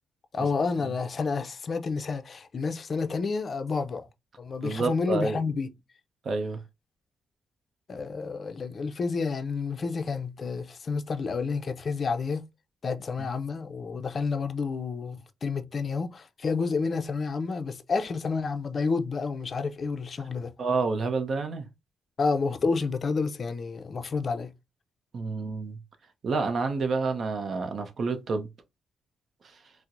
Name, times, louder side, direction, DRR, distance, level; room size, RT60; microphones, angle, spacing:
voice 1, 0.3-4.1 4.4-5.7 7.9-12.5 12.8-20.5 22.2-24.5, left 4 dB, 45° left, 0.4 m, -30 dB
voice 2, 4.6-5.4 6.2-6.6 20.6-21.7 25.1-25.8 26.2-28.5, right 4 dB, 50° right, 0.6 m, -28 dB
4.3 x 2.0 x 2.5 m
cardioid pair, 100°, 0 cm